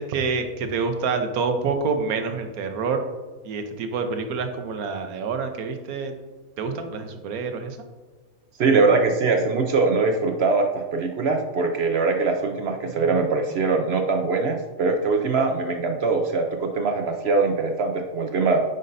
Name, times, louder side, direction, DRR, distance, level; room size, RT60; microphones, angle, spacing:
voice 1, 0.0-3.0 3.4-6.1 6.6-7.8, right 4 dB, 80° right, 6 dB, 1.2 m, -27 dB
voice 2, 8.6-18.6, right 4 dB, 60° right, 4 dB, 0.7 m, -22 dB
9.3 x 5.3 x 2.6 m, 1.3 s
omnidirectional pair, 1.5 m